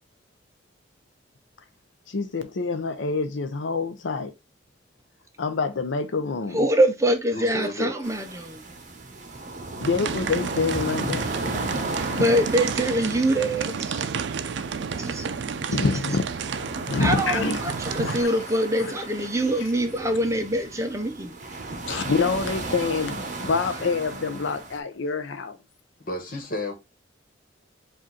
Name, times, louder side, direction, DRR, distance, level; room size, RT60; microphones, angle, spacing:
voice 1, 2.1-4.3 5.4-6.6 9.8-12.3 14.9-15.0 15.7-16.3 16.9-18.4 18.8-19.0 21.9-25.6, left 4 dB, 85° left, 0.6 m, -27 dB
voice 2, 6.5-8.6 12.1-14.1 15.0-15.3 17.0-21.3, right 1 dB, 15° right, 0.7 m, -24 dB
voice 3, 7.3-7.9 26.0-26.7, left 1 dB, 50° left, 1.4 m, -32 dB
sound 1, 8.0-24.8, right 2 dB, 40° right, 1.0 m, -35 dB
sound 2, 9.8-18.2, right 6 dB, 70° right, 0.4 m, -31 dB
5.0 x 2.6 x 4.1 m
head